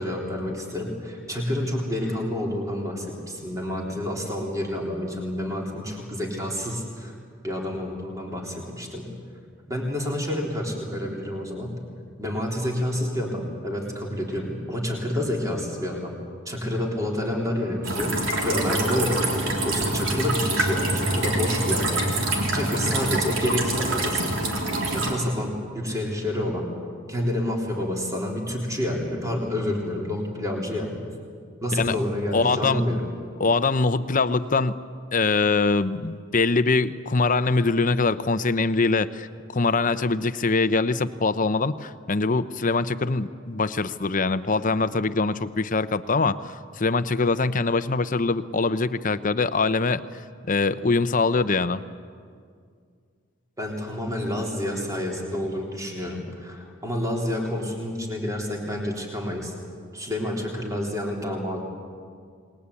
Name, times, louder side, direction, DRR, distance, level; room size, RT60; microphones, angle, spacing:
voice 1, 0.0-7.1 7.4-9.1 9.7-11.8 12.2-16.2 16.5-24.4 24.9-26.7 27.1-31.0 31.6-33.1 53.6-59.5 59.9-61.6, left 1 dB, 15° right, 0 dB, 3.6 m, -29 dB
sound 1, 17.8-25.1, right 2 dB, 70° right, 3.8 m, -25 dB
voice 2, 32.3-32.8 33.4-34.8 35.1-50.0 50.5-51.8, left 3 dB, 40° left, 13 dB, 0.8 m, -23 dB
28.5 x 20.5 x 8.5 m, 2.1 s
head